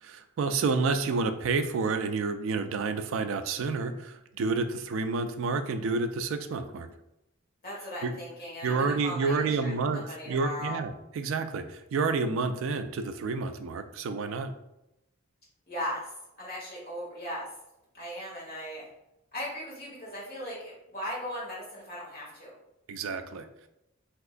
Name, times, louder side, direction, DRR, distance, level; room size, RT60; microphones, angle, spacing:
voice 1, 0.0-6.9 8.0-8.1 8.6-14.5 22.9-23.5, right 4 dB, 60° right, 8 dB, 0.3 m, -29 dB
voice 2, 7.6-10.8 15.7-17.5 17.9-18.9 19.3-22.5, equal, 45° left, -6 dB, 1.5 m, -38 dB
3.5 x 2.9 x 2.4 m, 0.86 s
head